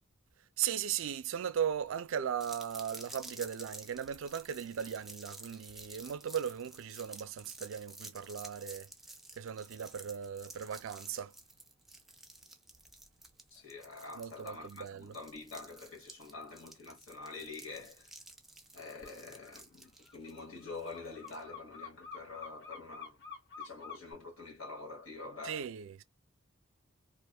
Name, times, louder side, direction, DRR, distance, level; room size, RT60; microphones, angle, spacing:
voice 1, 0.6-8.9 9.4-11.3 14.1-15.2 25.4-26.0, right 8 dB, 75° right, 0.4 m, -37 dB
sound 1, 2.4-21.4, right 2 dB, ahead, 0.3 m, -52 dB
voice 2, 13.5-18.1 18.7-23.2 23.6-25.6, left 3 dB, 80° left, 1.4 m, -46 dB
sound 2, 19.0-19.2 19.4-24.1, left 6 dB, 60° left, 1.0 m, -48 dB
2.4 x 2.2 x 2.3 m
head